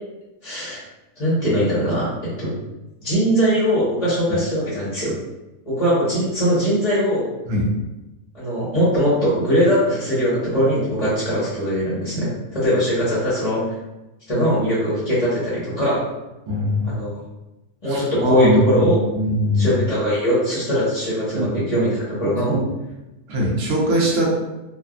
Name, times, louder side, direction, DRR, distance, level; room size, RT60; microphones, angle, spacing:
voice 1, 0.4-0.8 1.2-2.1 2.4-2.5 3.0-5.2 5.7-7.3 8.3-13.6 14.3-16.1 16.9-17.2 17.8-19.0 19.6-22.6, equal, 30° left, -10 dB, 0.8 m, -21 dB
voice 2, 16.5-17.0 17.9-19.8 21.4-21.5 22.5-22.6 23.3-24.3, equal, 60° right, -4 dB, 1.0 m, -21 dB
3.2 x 2.1 x 2.4 m, 1.0 s
omnidirectional pair, 1.6 m